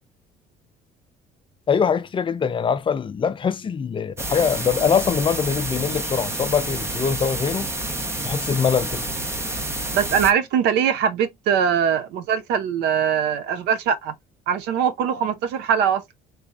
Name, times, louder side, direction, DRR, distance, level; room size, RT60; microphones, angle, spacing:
voice 1, 1.7-7.7 8.2-9.0, left 6 dB, 30° left, 0.4 m, -23 dB
sound 1, 4.2-10.3, right 1 dB, 15° right, 0.6 m, -29 dB
voice 2, 9.9-14.1 14.5-16.1, right 8 dB, 85° right, 0.7 m, -22 dB
3.4 x 3.2 x 2.5 m
cardioid pair, 110°, 17 cm